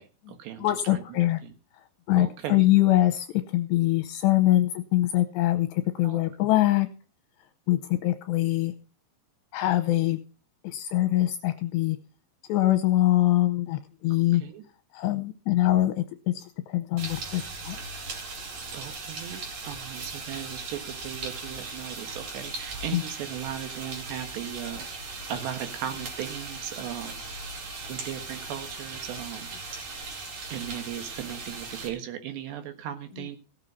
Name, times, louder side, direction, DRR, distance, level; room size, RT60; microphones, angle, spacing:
voice 1, 0.0-1.5 2.1-2.7 6.0-6.2 14.3-14.7 18.7-24.9 25.3-27.2 27.9-29.5 30.5-33.4, right 10 dB, 70° right, 8 dB, 3.5 m, -37 dB
voice 2, 0.6-1.4 2.1-3.3 3.5-6.9 7.7-8.7 9.5-10.2 10.6-12.0 12.5-14.4 14.9-17.8 22.9-23.0, left 15 dB, 80° left, 9 dB, 2.8 m, -23 dB
sound 1, 17.0-31.9, right 3 dB, 45° right, 3.3 m, -38 dB
16.0 x 7.4 x 5.5 m, 0.36 s
omnidirectional pair, 5.4 m